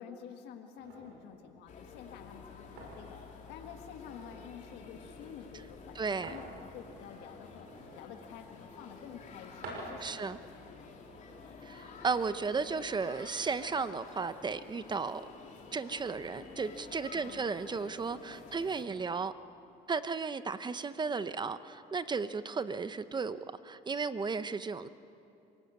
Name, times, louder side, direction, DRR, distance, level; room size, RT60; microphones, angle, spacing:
voice 1, 0.0-11.0 17.1-17.7, left 8 dB, 90° left, 5 dB, 1.6 m, -50 dB
sound 1, 0.8-12.6, right 2 dB, 90° right, 6.9 m, -52 dB
sound 2, 1.7-18.8, left 4 dB, 45° left, 3.2 m, -50 dB
voice 2, 5.9-6.4 10.0-10.4 11.6-15.2 15.7-19.3 19.9-23.4 23.6-24.9, right 4 dB, 25° right, 13 dB, 0.8 m, -34 dB
27.0 x 18.5 x 8.5 m, 2.6 s
cardioid pair, 110°, 17 cm